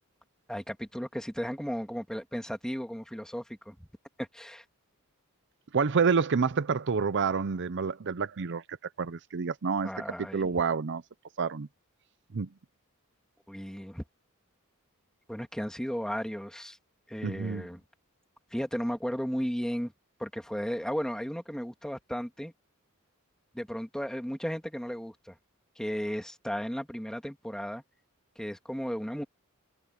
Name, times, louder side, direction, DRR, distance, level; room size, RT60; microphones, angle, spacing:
voice 1, 0.5-3.9 4.2-4.6 9.8-10.5 13.5-14.0 15.3-16.8 17.1-17.8 18.5-19.9 20.2-22.5 23.5-25.4 25.8-27.8 28.4-29.2, equal, 5° left, 2.3 m, -35 dB
voice 2, 5.7-8.6 9.0-9.9 10.2-11.0 11.4-11.7 12.3-12.5 17.2-17.7, right 5 dB, 55° right, 0.6 m, -28 dB
head